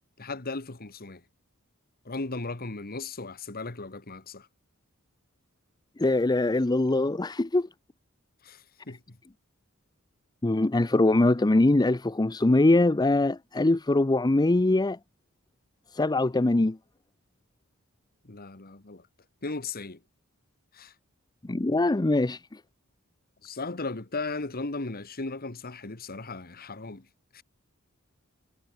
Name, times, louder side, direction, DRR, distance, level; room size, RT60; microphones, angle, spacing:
voice 1, 0.2-1.2 2.0-4.5 8.4-9.2 18.2-19.0 19.4-20.0 20.7-20.9 23.4-27.0 27.3-27.4, left 3 dB, 45° left, 1.7 m, -36 dB
voice 2, 6.0-7.7 10.4-15.0 15.9-16.8 21.4-22.6, left 2 dB, 20° left, 0.5 m, -23 dB
head